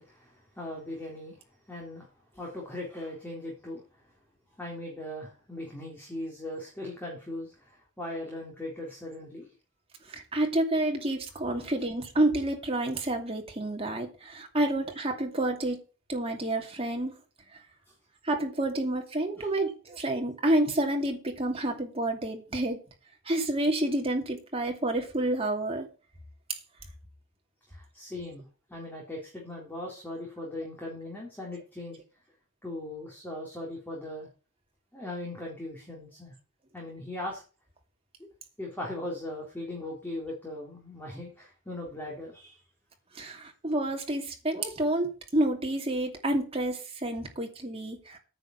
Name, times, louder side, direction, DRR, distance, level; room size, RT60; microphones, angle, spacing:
voice 1, 0.0-1.4 1.7-2.1 2.3-3.8 4.6-9.5 11.5-11.6 19.4-19.5 27.7-28.4 28.7-32.0 32.6-34.3 34.9-36.3 36.7-37.4 38.6-42.6, left 1 dB, 10° left, -2 dB, 3.9 m, -39 dB
voice 2, 10.1-15.8 16.1-17.1 18.3-22.8 23.3-25.9 43.2-48.2, right 1 dB, 30° right, 2 dB, 2.7 m, -29 dB
9.7 x 6.7 x 8.1 m, 0.35 s
head